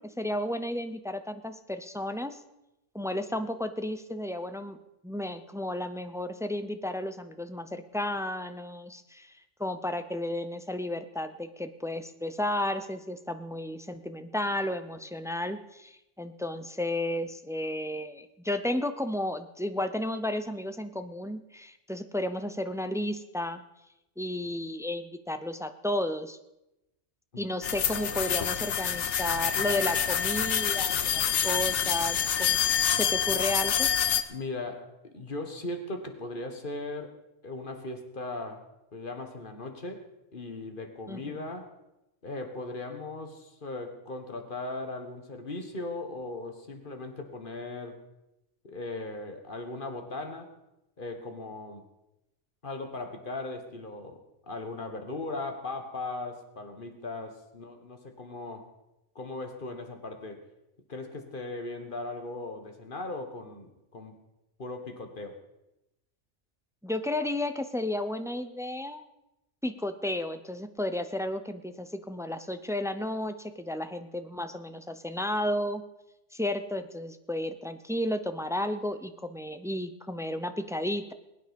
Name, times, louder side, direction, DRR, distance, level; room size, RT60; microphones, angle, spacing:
voice 1, 0.0-2.4 2.9-4.8 5.0-9.3 9.6-23.6 24.2-26.4 27.4-33.9 41.1-41.2 66.8-69.0 69.6-75.8 76.3-81.1, left 1 dB, 5° right, 9 dB, 0.5 m, -33 dB
voice 2, 27.3-28.4 34.3-37.1 37.4-38.7 38.9-40.1 40.3-41.7 42.2-48.0 48.6-50.5 51.0-51.8 52.6-58.7 59.2-60.4 60.9-64.2 64.6-65.4, left 2 dB, 45° left, 5 dB, 1.8 m, -38 dB
sound 1, 27.6-34.2, left 8 dB, 70° left, 1.1 m, -27 dB
21.0 x 9.2 x 5.3 m, 0.93 s
omnidirectional pair, 1.3 m